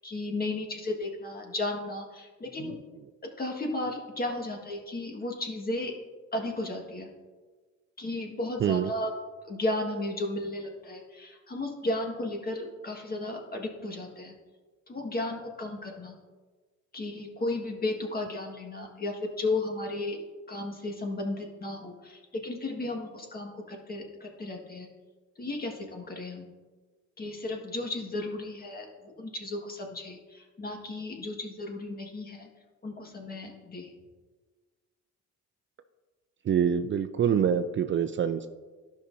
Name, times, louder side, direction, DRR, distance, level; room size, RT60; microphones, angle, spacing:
voice 1, 0.0-2.7 3.4-5.9 6.3-7.1 8.0-9.1 9.4-14.3 14.9-16.1 16.9-20.2 20.5-24.9 25.4-26.5 27.2-32.5 32.8-33.9, left 2 dB, 30° left, 1 dB, 1.6 m, -34 dB
voice 2, 36.5-38.5, right 8 dB, 40° right, 10 dB, 0.4 m, -25 dB
12.5 x 5.7 x 2.7 m, 1.3 s
cardioid pair, 90°, 30 cm